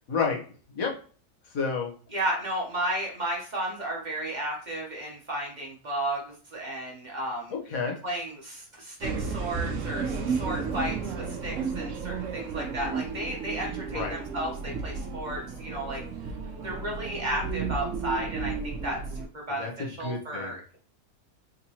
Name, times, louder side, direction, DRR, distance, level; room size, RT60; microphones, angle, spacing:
voice 1, 0.1-0.4 0.7-0.9 1.5-1.9 7.5-8.0 13.9-14.2 19.5-20.5, left 5 dB, 85° left, 1 dB, 1.4 m, -30 dB
voice 2, 2.1-7.5 8.0-16.3 16.6-20.8, right 1 dB, 40° right, -1 dB, 0.8 m, -33 dB
sound 1, 9.0-19.2, right 5 dB, 70° right, 0.9 m, -33 dB
3.9 x 2.8 x 2.7 m, 0.40 s
omnidirectional pair, 1.4 m